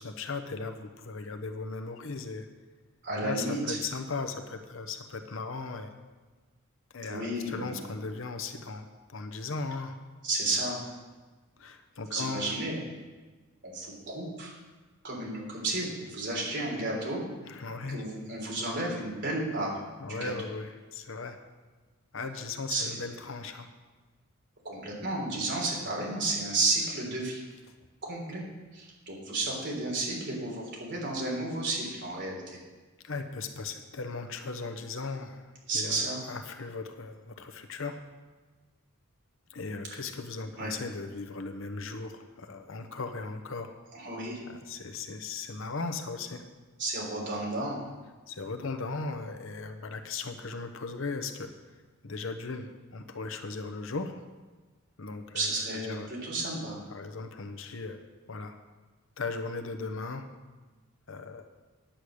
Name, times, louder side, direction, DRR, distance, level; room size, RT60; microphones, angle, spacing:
voice 1, 0.0-2.5 3.1-5.9 6.9-10.0 11.6-12.6 17.4-18.0 20.0-21.4 22.1-23.7 33.0-38.0 39.5-43.7 44.5-46.4 48.3-51.5 52.0-54.2 55.0-55.5 55.8-56.1 56.9-58.0 58.3-58.6 59.2-60.3 61.1-61.4, left 4 dB, 65° left, 6 dB, 0.8 m, -37 dB
voice 2, 3.0-3.8 7.1-7.8 10.2-10.8 12.1-12.9 13.6-14.5 15.0-17.2 17.9-20.3 22.7-22.9 24.6-27.4 28.0-28.4 28.7-32.6 35.7-36.2 40.6-40.7 43.9-44.4 46.8-47.8 55.3-56.8, right 2 dB, 55° right, -2 dB, 3.5 m, -32 dB
10.0 x 8.4 x 6.3 m, 1.3 s
head